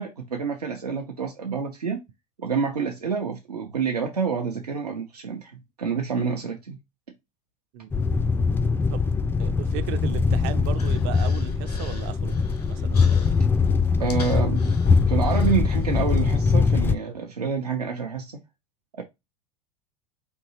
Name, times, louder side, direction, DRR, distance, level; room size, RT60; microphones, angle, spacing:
voice 1, 0.0-2.0 2.4-6.8 14.0-14.6 15.1-18.4 19.0-19.1, right 5 dB, 85° right, 0.7 m, -28 dB
sound 1, 7.9-17.0, left 5 dB, 10° left, 0.3 m, -22 dB
voice 2, 9.4-12.3 12.7-13.0, right 12 dB, 50° right, 0.5 m, -35 dB
Human voice, 9.9-16.2, left 4 dB, 90° left, 0.9 m, -45 dB
4.5 x 2.8 x 2.9 m
figure-of-eight pair, 85°, 20 cm